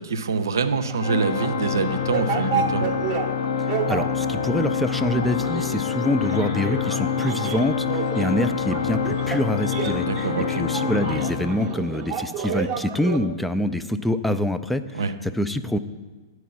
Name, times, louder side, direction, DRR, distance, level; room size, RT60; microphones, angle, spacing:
voice 1, 0.0-2.9 10.0-10.6 14.9-15.1, right 5 dB, 65° right, 9 dB, 0.6 m, -25 dB
sound 1, 0.9-13.2, right 7 dB, 30° right, 0.8 m, -31 dB
Organ, 1.0-12.2, left 7 dB, 55° left, 0.6 m, -26 dB
voice 2, 3.9-15.8, left 1 dB, 5° left, 10 dB, 0.4 m, -26 dB
11.0 x 4.8 x 6.0 m, 1.3 s
figure-of-eight pair, 105°, 2 cm